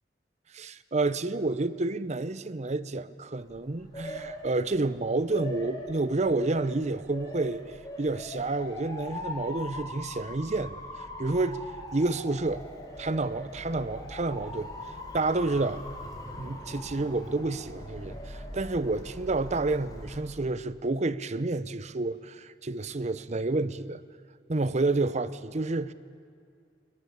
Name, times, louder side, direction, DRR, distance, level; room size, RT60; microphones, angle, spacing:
voice 1, 0.5-7.6 8.0-10.8 11.2-11.6 11.9-12.6 13.0-14.7 15.1-15.8 16.4-24.0 24.5-25.9, right 2 dB, 40° right, 0.7 m, -29 dB
Motor vehicle (road) / Siren, 3.4-20.2, left 1 dB, 20° left, 3.9 m, -41 dB
21.5 x 20.5 x 8.7 m
head